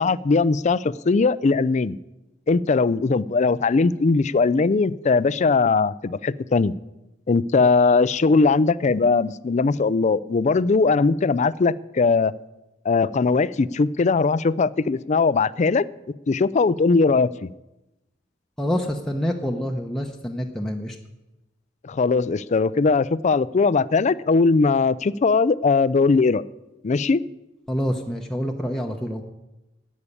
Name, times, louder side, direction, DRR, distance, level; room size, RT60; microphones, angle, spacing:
voice 1, 0.0-2.0 2.5-6.7 7.3-12.3 12.8-15.9 16.3-17.5 21.8-26.4 26.8-27.2, left 4 dB, 35° left, 18 dB, 0.4 m, -20 dB
voice 2, 18.6-21.0 27.7-29.2, equal, ahead, 0 dB, 0.8 m, -27 dB
12.0 x 8.4 x 9.8 m, 0.99 s
head